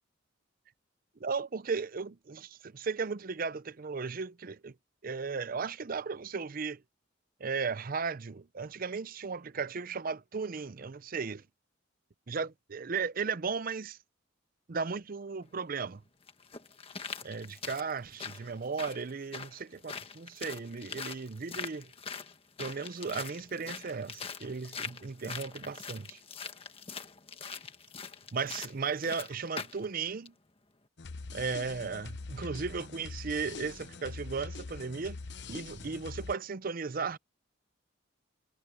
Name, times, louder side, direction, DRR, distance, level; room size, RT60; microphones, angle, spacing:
voice 1, 1.2-4.7 5.0-6.8 7.4-11.4 12.3-14.0 14.7-16.0 17.2-21.9 22.6-26.2 28.3-30.3 31.3-35.2 35.5-37.2, right 5 dB, 45° right, 0.6 m, -36 dB
sound 1, 15.4-15.5 16.3-29.8 30.2-30.3, left 5 dB, 30° left, 1.5 m, -43 dB
sound 2, 31.0-36.3, left 4 dB, 60° left, 0.8 m, -43 dB
head